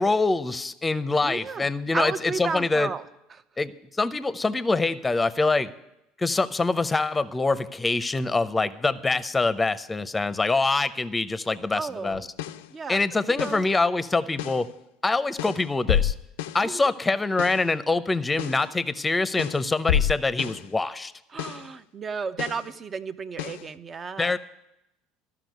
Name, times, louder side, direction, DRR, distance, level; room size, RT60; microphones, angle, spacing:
voice 1, 0.0-2.9 3.6-3.7 4.0-5.7 6.2-12.2 12.9-14.7 15.0-16.1 16.5-21.1 24.2-24.4, left 3 dB, 15° left, 14 dB, 0.7 m, -25 dB
voice 2, 1.2-1.7 1.9-3.0 11.7-12.3 12.7-13.0 13.4-13.6 16.6-16.9 21.3-24.3, right 5 dB, 35° right, 12 dB, 0.7 m, -33 dB
sound 1, 12.1-12.7 13.4-13.7 14.4-14.7 15.4-16.7 17.4-17.7 18.4-18.7 19.4-20.7 21.4-21.7 22.4-22.7 23.4-23.7, left 10 dB, 85° left, 0.4 m, -29 dB
13.0 x 5.9 x 9.3 m, 0.85 s
hypercardioid pair, 85°, 0 cm